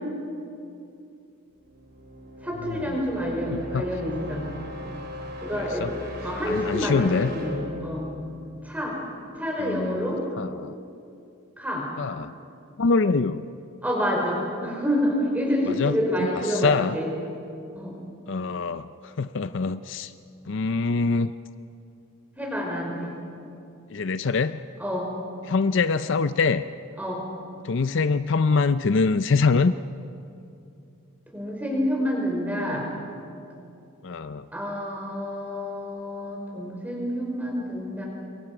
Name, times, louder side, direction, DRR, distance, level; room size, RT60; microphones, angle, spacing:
sound 1, 1.6-9.4, left 1 dB, 45° right, 4.5 m, -39 dB
voice 1, 2.4-4.5 5.4-5.9 6.2-8.1 8.6-9.0 9.4-10.2 11.6-11.9 13.8-17.1 17.7-17.9 22.4-23.1 24.8-25.1 27.0-27.2 31.3-32.9 34.5-38.1, equal, 5° right, -1 dB, 4.9 m, -28 dB
voice 2, 3.5-3.9 5.5-5.9 6.4-7.3 9.6-10.7 12.0-12.3 12.8-13.5 15.7-17.0 18.3-20.1 20.5-21.3 23.9-24.6 25.4-26.7 27.6-29.8 34.0-34.5, left 4 dB, 55° left, 12 dB, 0.5 m, -24 dB
28.0 x 23.0 x 6.0 m, 2.6 s
head